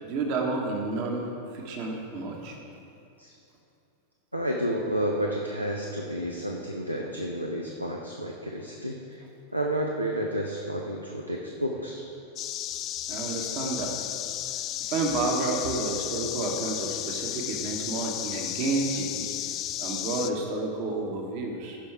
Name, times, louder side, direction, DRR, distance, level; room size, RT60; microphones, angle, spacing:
voice 1, 0.0-2.6 13.1-14.1 14.8-19.3 19.8-21.8, right 3 dB, 45° right, 1 dB, 1.3 m, -30 dB
voice 2, 4.3-9.2 9.5-12.1, equal, 90° right, 0 dB, 0.7 m, -31 dB
sound 1, 12.4-20.3, left 12 dB, 35° left, 0.4 m, -33 dB
15.0 x 5.6 x 4.7 m, 2.7 s
figure-of-eight pair, 90°, 0 cm